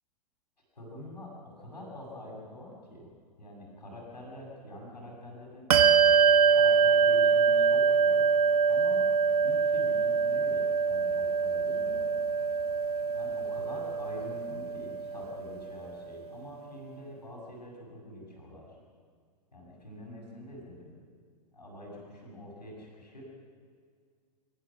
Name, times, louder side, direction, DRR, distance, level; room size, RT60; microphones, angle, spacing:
voice 1, 0.7-3.1 3.4-5.7 6.5-8.2 8.7-9.1 9.4-12.1 13.1-18.8 19.5-20.9 21.5-23.2, left 1 dB, 85° left, -2 dB, 7.1 m, -45 dB
Bell, 5.7-15.7, right 6 dB, 65° right, 1.3 m, -24 dB
30.0 x 15.0 x 6.2 m, 2.1 s
figure-of-eight pair, 100°, 21 cm